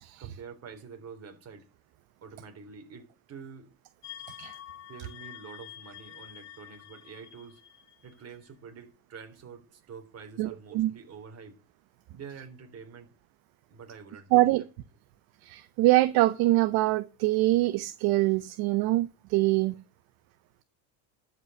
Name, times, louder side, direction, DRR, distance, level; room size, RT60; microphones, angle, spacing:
voice 1, 0.2-1.7 2.2-3.7 4.9-7.6 8.0-11.6 12.1-13.1 13.7-14.5, right 6 dB, 35° right, 3.7 m, -47 dB
sound 1, 4.0-8.4, left 11 dB, 40° left, 2.1 m, -47 dB
voice 2, 10.4-10.9 14.3-14.6 15.4-19.7, right 17 dB, 60° right, 0.9 m, -24 dB
12.5 x 5.5 x 7.8 m
supercardioid pair, 100°, 41 cm